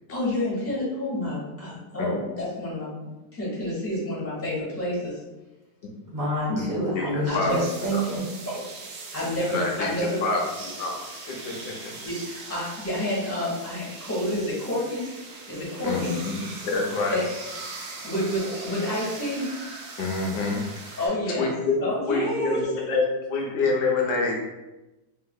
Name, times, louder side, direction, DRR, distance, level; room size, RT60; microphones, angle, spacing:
voice 1, 0.1-2.9 3.3-5.2 7.3-7.6 9.1-10.2 12.0-15.1 15.5-16.1 17.1-17.2 18.0-19.5 21.0-21.5 21.8-22.7, left 1 dB, 10° left, -6 dB, 0.8 m, -29 dB
voice 2, 6.1-8.6, right 1 dB, 25° right, -7 dB, 0.4 m, -28 dB
sound 1, 7.5-21.1, right 3 dB, 70° right, 1.0 m, -40 dB
voice 3, 9.5-9.9 10.2-11.0 11.3-11.9 15.8-17.2 20.0-20.6 21.3-23.0 23.3-24.4, left 3 dB, 85° left, 0 dB, 1.3 m, -26 dB
3.3 x 2.7 x 2.2 m, 1.0 s
omnidirectional pair, 1.8 m